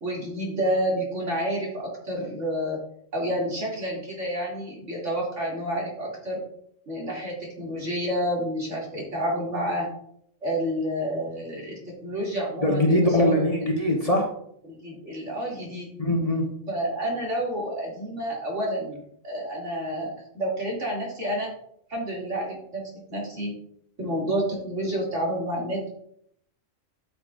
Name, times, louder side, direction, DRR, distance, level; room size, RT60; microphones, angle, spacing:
voice 1, 0.0-2.8 3.1-6.4 6.9-9.9 10.4-13.7 14.6-15.9 16.7-21.5 21.9-22.8 23.1-23.5 24.0-25.9, right 1 dB, 70° right, -4 dB, 3.0 m, -29 dB
voice 2, 12.6-14.3 16.0-16.5, left 1 dB, 30° left, 0 dB, 1.2 m, -22 dB
12.0 x 7.1 x 2.5 m, 0.71 s
omnidirectional pair, 1.3 m